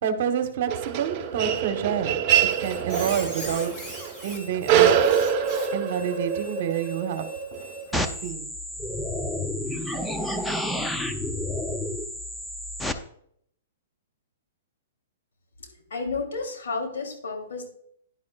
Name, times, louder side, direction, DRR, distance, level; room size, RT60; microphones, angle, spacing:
voice 1, 0.0-3.7 4.2-5.0 5.7-7.3 7.9-8.5, right 8 dB, 55° right, 7 dB, 1.2 m, -28 dB
sound 1, 0.7-7.9, right 8 dB, 30° right, 1.1 m, -25 dB
Squeak, 2.3-8.3, equal, 20° left, 3.1 m, -41 dB
sound 2, 7.9-12.9, left 1 dB, 5° left, 0.6 m, -30 dB
voice 2, 15.6-17.7, left 4 dB, 85° left, 3 dB, 3.2 m, -32 dB
10.5 x 10.5 x 2.5 m, 0.67 s
hypercardioid pair, 150°, 0 cm